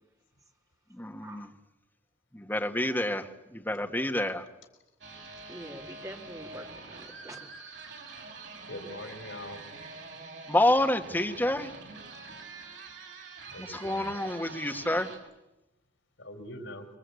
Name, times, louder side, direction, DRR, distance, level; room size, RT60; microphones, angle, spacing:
voice 1, 0.9-1.5 2.3-4.5 10.5-11.7 13.6-15.1, left 1 dB, 10° left, 4 dB, 1.6 m, -28 dB
sound 1, 5.0-15.2, right 3 dB, 65° right, 6.5 m, -45 dB
voice 2, 5.5-7.7, right 1 dB, 20° right, 2 dB, 2.8 m, -45 dB
voice 3, 8.7-9.6 13.5-14.1 16.2-16.9, left 1 dB, 85° left, 6 dB, 4.0 m, -42 dB
26.0 x 23.5 x 8.4 m, 0.95 s
head